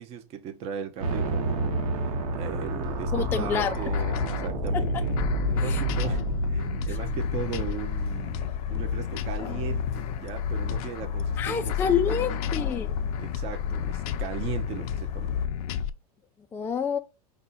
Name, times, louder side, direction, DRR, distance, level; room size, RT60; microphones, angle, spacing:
voice 1, 0.0-11.7 12.1-12.6 13.2-15.3, right 8 dB, 35° right, 0.6 m, -38 dB
sound 1, 1.0-9.1, right 3 dB, 75° right, 1.1 m, -30 dB
sound 2, 2.8-15.9, left 8 dB, 70° left, 0.6 m, -30 dB
voice 2, 3.1-3.8 4.7-5.0 5.6-5.8 6.9-7.0 11.4-12.9 16.5-17.0, left 7 dB, 10° left, 0.3 m, -28 dB
sound 3, 6.9-15.5, left 7 dB, 35° left, 0.7 m, -48 dB
5.2 x 2.2 x 4.0 m
supercardioid pair, 150°, 19 cm